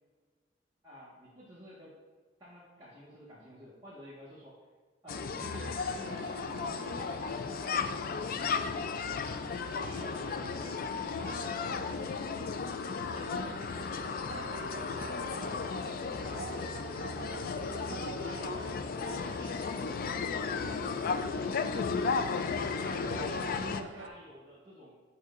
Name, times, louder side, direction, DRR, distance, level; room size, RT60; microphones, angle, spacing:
voice 1, 0.8-1.9 2.4-4.6 5.0-8.2 8.5-9.4 9.7-12.5 13.1-14.6 15.3-15.6 16.2-16.8 17.3-18.6 19.0-20.6 21.6-22.2 22.9-24.9, equal, 25° right, -9 dB, 1.4 m, -49 dB
sound 1, 5.1-23.8, left 5 dB, 50° left, 0.4 m, -34 dB
sound 2, 5.4-24.1, right 5 dB, 80° right, 0.4 m, -48 dB
9.2 x 5.4 x 2.4 m, 1.4 s
head